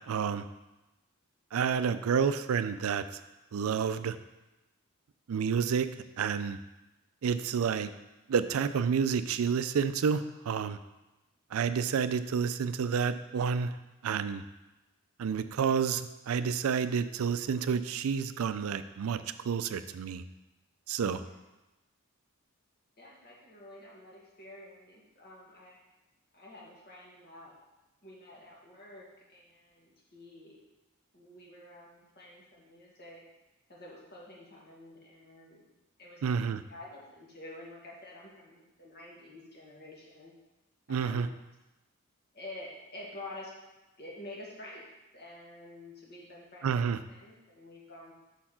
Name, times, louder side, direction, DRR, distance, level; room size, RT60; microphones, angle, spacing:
voice 1, 0.1-0.4 1.5-3.2 3.5-4.2 5.3-5.9 6.2-6.6 7.2-7.9 8.3-10.8 11.5-13.7 14.0-14.4 15.2-20.2 20.9-21.2 36.2-36.6 40.9-41.3 46.6-47.0, right 6 dB, 75° right, 12 dB, 0.4 m, -29 dB
voice 2, 23.0-25.8 26.3-27.5 28.0-30.6 31.1-33.2 33.7-35.7 36.0-40.3 40.9-41.3 42.3-43.5 44.0-44.9 45.1-48.1, left 1 dB, 45° left, -4 dB, 1.8 m, -49 dB
5.8 x 4.3 x 5.8 m, 1.0 s
head